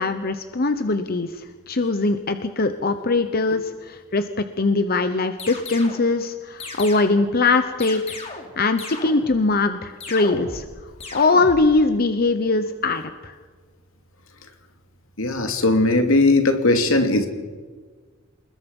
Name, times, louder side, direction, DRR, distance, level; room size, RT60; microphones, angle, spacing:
voice 1, 0.0-8.2 8.6-10.6 11.1-13.4, left 3 dB, 45° left, 9 dB, 1.0 m, -21 dB
sound 1, 5.4-6.1 6.6-7.3 7.8-8.5 8.8-9.4 10.0-10.7 11.0-11.7, left 3 dB, 30° left, 3.6 m, -35 dB
voice 2, 15.2-17.3, left 2 dB, 80° left, 5 dB, 2.7 m, -18 dB
28.5 x 20.5 x 5.5 m, 1.5 s
head